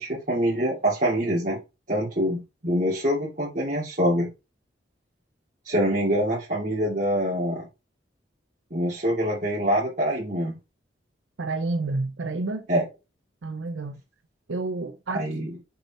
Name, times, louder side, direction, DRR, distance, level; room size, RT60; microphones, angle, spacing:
voice 1, 0.0-1.6 1.9-4.3 5.6-7.6 8.7-10.5 12.7-12.8 15.1-15.6, equal, 45° right, 2.9 m, -25 dB
voice 2, 11.4-12.7 13.4-14.0 14.5-15.3, right 3 dB, 80° right, 0.6 m, -29 dB
6.7 x 4.1 x 4.3 m
head